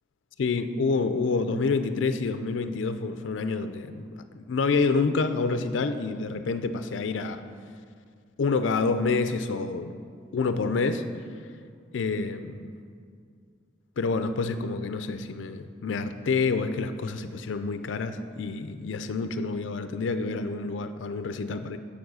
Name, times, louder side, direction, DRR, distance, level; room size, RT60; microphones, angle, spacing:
voice 1, 0.4-7.4 8.4-9.9 10.3-11.0 11.9-12.7 14.0-21.8, left 4 dB, 85° left, 10 dB, 0.4 m, -28 dB
7.1 x 7.1 x 6.2 m, 2.2 s
head